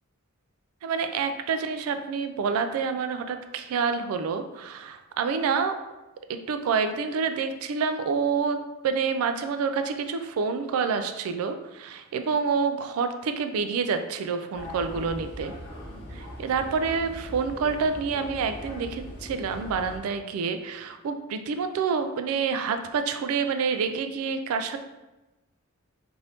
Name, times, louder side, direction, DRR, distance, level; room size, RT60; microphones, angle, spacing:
voice 1, 0.8-5.8 6.3-8.6 8.8-15.5 16.1-24.8, right 5 dB, 80° right, 8 dB, 0.3 m, -28 dB
sound 1, 14.5-20.0, equal, 25° left, 0.8 m, -40 dB
2.6 x 2.6 x 3.3 m, 1.1 s
head